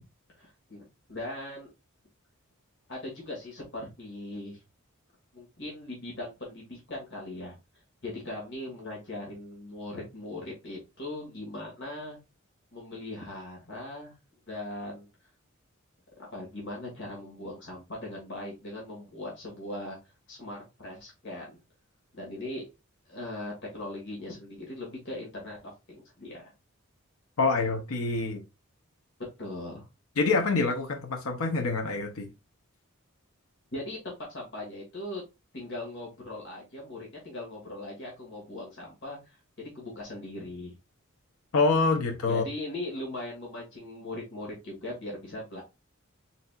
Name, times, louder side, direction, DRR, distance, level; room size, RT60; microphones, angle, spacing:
voice 1, 0.3-1.7 2.9-4.6 5.3-7.6 8.0-12.2 12.7-14.1 14.5-15.1 16.3-20.0 20.3-21.6 22.1-22.7 23.1-26.5 29.4-29.8 33.7-35.2 35.5-39.2 39.6-40.7 42.3-45.6, left 1 dB, 60° left, 1.8 m, -39 dB
voice 2, 27.4-28.4 30.2-32.3 41.5-42.4, left 3 dB, 85° left, 0.7 m, -26 dB
4.1 x 4.1 x 2.3 m
head